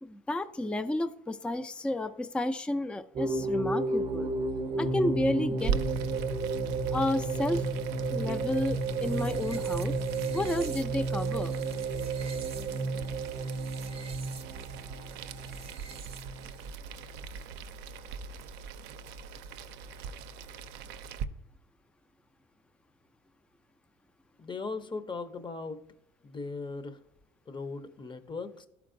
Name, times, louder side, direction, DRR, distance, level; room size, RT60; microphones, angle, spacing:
voice 1, 0.0-4.3 4.8-5.7 6.9-7.7 8.1-10.0 10.3-11.5, left 1 dB, 5° left, 11 dB, 0.3 m, -31 dB
sound 1, 3.1-16.7, right 4 dB, 35° right, 0.6 m, -32 dB
sound 2, 4.8-10.5, left 11 dB, 85° left, 0.4 m, -41 dB
Boiling, 5.6-21.2, right 6 dB, 75° right, 0.5 m, -41 dB
voice 2, 24.4-25.8 26.2-27.0 27.5-28.7, left 4 dB, 25° left, 11 dB, 0.7 m, -38 dB
12.0 x 4.6 x 2.6 m, 0.76 s
supercardioid pair, 80°, 17 cm